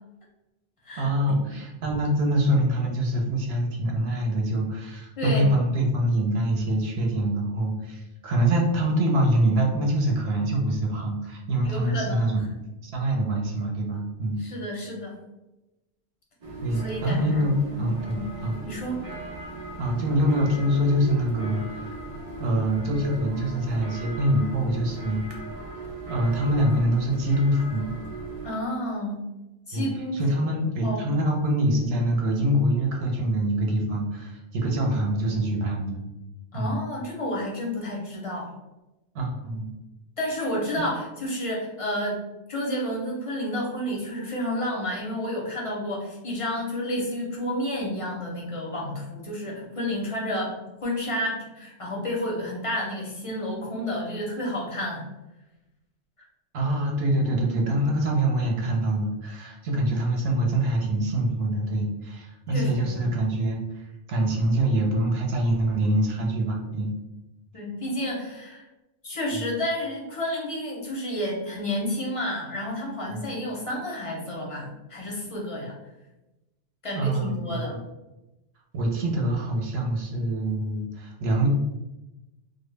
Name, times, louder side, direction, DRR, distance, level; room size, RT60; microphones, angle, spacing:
voice 1, 1.0-12.4 12.8-14.4 16.6-18.6 19.8-22.0 22.4-25.3 26.1-27.9 29.7-29.9 30.1-36.0 36.5-36.8 39.1-39.7 56.5-66.9 69.3-69.6 73.1-73.3 76.9-77.8 78.7-81.5, right 1 dB, 70° right, 0 dB, 0.8 m, -25 dB
voice 2, 5.2-5.5 11.6-12.4 14.4-15.2 16.8-18.3 18.6-19.0 28.4-29.2 29.7-30.2 30.8-31.0 36.5-38.5 40.2-42.2 42.5-50.6 50.8-55.0 62.5-63.1 67.5-68.6 69.0-75.8 76.8-77.8, left 1 dB, 45° left, -3 dB, 0.4 m, -30 dB
sound 1, 16.4-28.5, right 2 dB, 50° right, 0.4 m, -38 dB
2.1 x 2.0 x 3.1 m, 1.0 s
omnidirectional pair, 1.1 m